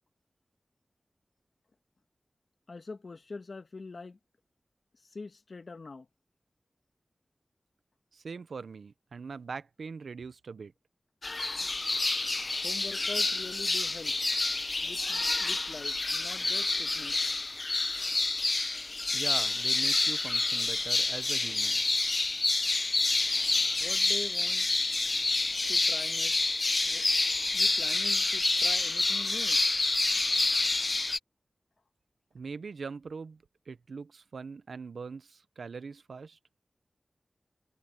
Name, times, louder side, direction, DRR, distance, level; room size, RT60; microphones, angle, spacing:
voice 1, 2.7-4.2 5.0-6.1 12.6-14.2 14.8-17.3 23.8-24.7 25.7-26.4 26.8-27.0 27.5-29.6, left 3 dB, 70° left, 1.7 m, -44 dB
voice 2, 8.1-10.7 19.1-21.8 32.3-36.4, right 5 dB, 90° right, 0.7 m, -42 dB
sound 1, 11.2-31.2, left 3 dB, 50° left, 0.9 m, -28 dB
cardioid pair, 45°, 0 cm